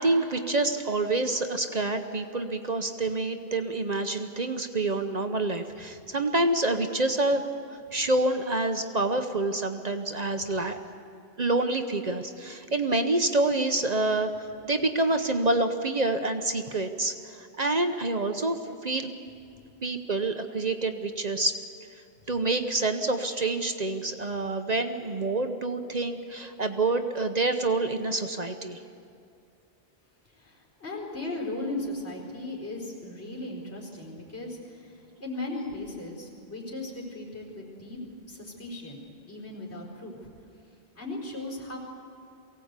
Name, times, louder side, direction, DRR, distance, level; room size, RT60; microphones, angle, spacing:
voice 1, 0.0-7.4 7.9-10.8 11.4-14.3 14.6-19.1 19.8-21.6 22.3-28.8, right 2 dB, 40° right, 7 dB, 0.9 m, -27 dB
voice 2, 30.3-38.0 38.3-39.0 39.3-40.3 41.0-41.8, left 2 dB, 75° left, -2 dB, 4.7 m, -37 dB
23.0 x 17.0 x 8.2 m, 2.4 s
omnidirectional pair, 1.1 m